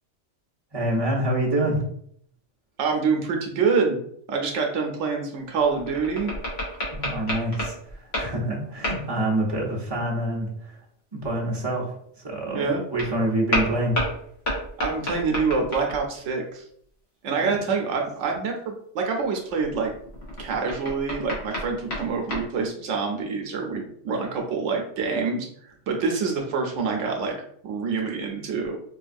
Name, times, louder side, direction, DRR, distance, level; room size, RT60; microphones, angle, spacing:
voice 1, 0.7-1.8 6.9-10.8 11.1-14.0 17.3-17.6, right 1 dB, 25° right, -4 dB, 0.9 m, -27 dB
voice 2, 2.8-4.0 4.3-6.3 12.5-12.8 14.8-16.6 17.2-19.9 20.4-27.4 27.6-28.8, right 5 dB, 85° right, 1 dB, 1.0 m, -26 dB
sound 1, 5.6-8.4 8.8-9.1 13.0-13.1 13.5-16.2 19.2-22.5, equal, 65° left, 1.4 m, -31 dB
4.5 x 2.3 x 2.5 m, 0.67 s
omnidirectional pair, 1.2 m